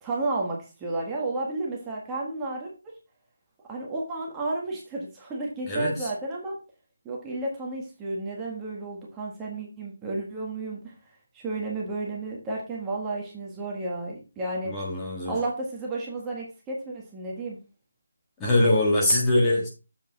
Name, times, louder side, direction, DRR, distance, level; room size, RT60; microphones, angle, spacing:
voice 1, 0.0-2.7 3.7-6.6 7.0-10.9 11.3-14.7 15.2-17.6, right 2 dB, 10° right, -3 dB, 1.6 m, -32 dB
voice 2, 5.7-6.1 14.6-15.3 18.4-19.7, left 1 dB, 10° left, -4 dB, 1.7 m, -23 dB
7.4 x 5.5 x 4.0 m, 0.31 s
figure-of-eight pair, 165°, 0 cm